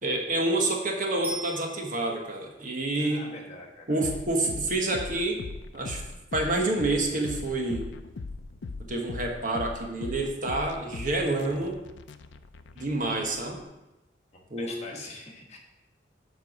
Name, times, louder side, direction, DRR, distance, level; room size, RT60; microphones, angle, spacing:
voice 1, 0.0-3.3 3.9-5.4 5.7-6.0 6.3-7.9 8.9-11.8 12.7-13.6 14.5-14.7, right 2 dB, 45° right, 1 dB, 1.2 m, -28 dB
Bicycle bell, 1.2-2.4 11.4-11.5, right 1 dB, 10° right, 1.5 m, -39 dB
voice 2, 3.0-4.0 12.7-12.9 14.3-15.6, left 2 dB, 40° left, 0 dB, 1.4 m, -44 dB
sound 1, 4.0-13.6, left 3 dB, 90° left, 0.5 m, -40 dB
8.0 x 4.6 x 5.9 m, 0.99 s
head